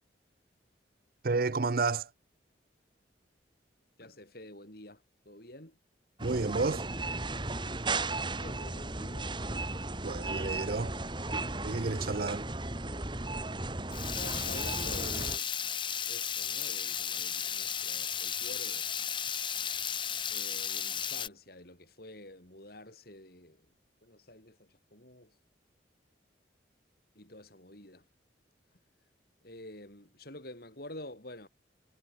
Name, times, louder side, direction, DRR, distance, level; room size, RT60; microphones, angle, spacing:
voice 1, 1.2-2.1 6.2-6.9 10.0-10.9 11.6-12.5, right 3 dB, 50° right, 0.7 m, -31 dB
voice 2, 4.0-5.0 5.3-5.7 8.4-9.3 14.2-15.5 16.1-19.0 20.3-23.6 24.0-25.3 27.2-28.0 29.4-31.5, left 1 dB, 55° left, 7.6 m, -48 dB
sound 1, 6.2-15.4, right 2 dB, 25° right, 3.0 m, -35 dB
Water tap faucet / Liquid, 13.9-21.3, left 8 dB, 25° left, 1.1 m, -34 dB
head